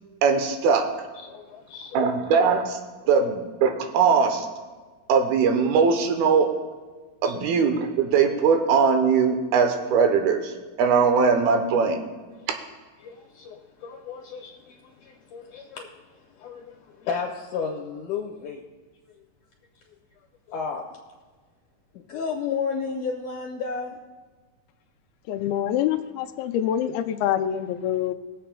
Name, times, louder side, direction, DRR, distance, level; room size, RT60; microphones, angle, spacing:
voice 1, 0.2-0.8 1.9-2.8 3.1-4.5 5.1-6.5 7.2-10.5 10.8-12.0, right 5 dB, 90° right, 5 dB, 2.8 m, -20 dB
voice 2, 1.2-2.1 3.0-3.1 7.2-7.4 12.3-12.5 13.0-16.1 16.4-18.6 20.5-20.9 21.9-24.0, left 5 dB, 70° left, -1 dB, 2.2 m, -33 dB
voice 3, 25.3-28.1, left 10 dB, 85° left, 8 dB, 2.4 m, -25 dB
22.5 x 7.5 x 2.2 m, 1.4 s
omnidirectional pair, 4.3 m